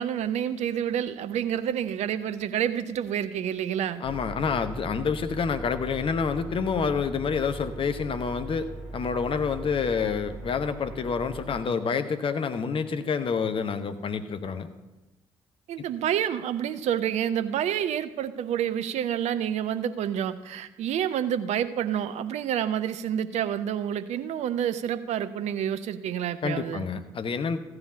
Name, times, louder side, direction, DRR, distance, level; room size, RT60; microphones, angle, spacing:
voice 1, 0.0-4.0 15.7-26.9, right 9 dB, 55° right, 13 dB, 0.6 m, -28 dB
voice 2, 4.0-14.7 26.4-27.6, left 5 dB, 40° left, 10 dB, 0.9 m, -28 dB
sound 1, 4.0-11.6, right 2 dB, 5° right, 4.2 m, -40 dB
14.5 x 4.8 x 7.3 m, 1.1 s
figure-of-eight pair, 45°, 14 cm